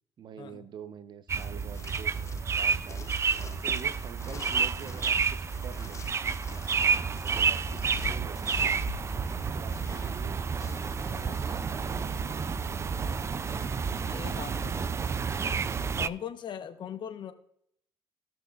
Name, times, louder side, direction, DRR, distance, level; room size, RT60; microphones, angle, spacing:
voice 1, 0.2-2.3 2.6-3.1 3.6-6.2 7.2-8.7 9.5-10.4 11.0-12.4, right 7 dB, 50° right, 12 dB, 0.8 m, -46 dB
sound 1, 1.3-16.1, right 6 dB, 30° right, 0.4 m, -30 dB
sound 2, 1.4-15.1, left 5 dB, 30° left, 0.6 m, -46 dB
sound 3, 1.5-8.3, right 4 dB, 80° right, 2.6 m, -60 dB
voice 2, 14.0-14.8 15.4-15.6 16.0-17.3, left 8 dB, 55° left, 9 dB, 1.0 m, -40 dB
16.0 x 6.0 x 2.4 m, 0.70 s
supercardioid pair, 85°, 9 cm